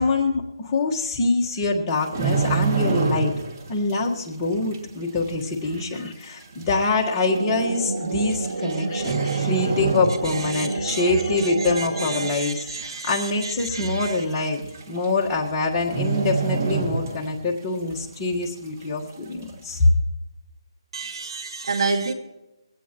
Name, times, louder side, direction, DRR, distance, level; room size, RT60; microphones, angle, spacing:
voice 1, 0.0-3.3 3.7-19.9, left 3 dB, 15° left, -2 dB, 1.5 m, -25 dB
sound 1, 1.9-3.6 3.9-4.2 4.7-4.8 5.7-5.8 6.0-6.1 7.0-7.2 8.3-8.7 9.0-10.6 10.9-11.1 11.6-12.1 12.5-12.6 12.8-12.9 13.3-13.4 14.4-14.5 14.7-15.0 15.3-15.4 15.8-17.5 17.8-17.9, right 5 dB, 35° right, 2.3 m, -26 dB
sound 2, 7.3-12.3, right 3 dB, 80° right, 1.2 m, -29 dB
voice 2, 8.6-9.5 10.2-14.2 20.9-22.1, right 4 dB, 65° right, 6 dB, 2.3 m, -31 dB
21.0 x 16.5 x 3.0 m, 0.95 s
hypercardioid pair, 165°, 3 cm